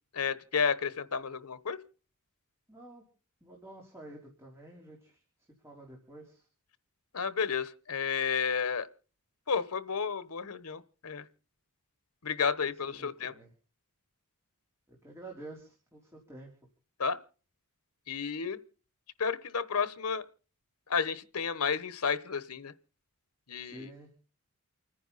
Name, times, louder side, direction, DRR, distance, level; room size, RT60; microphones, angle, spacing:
voice 1, 0.1-1.8 7.1-8.9 9.5-11.2 12.2-13.3 17.0-17.2 18.1-18.6 19.2-20.2 20.9-22.7 23.5-23.9, left 6 dB, 80° left, 1.1 m, -31 dB
voice 2, 2.7-3.0 3.4-5.2 5.6-6.4 12.6-13.5 14.9-16.5 23.6-24.1, right 1 dB, 10° right, 3.7 m, -49 dB
29.5 x 10.0 x 4.1 m
head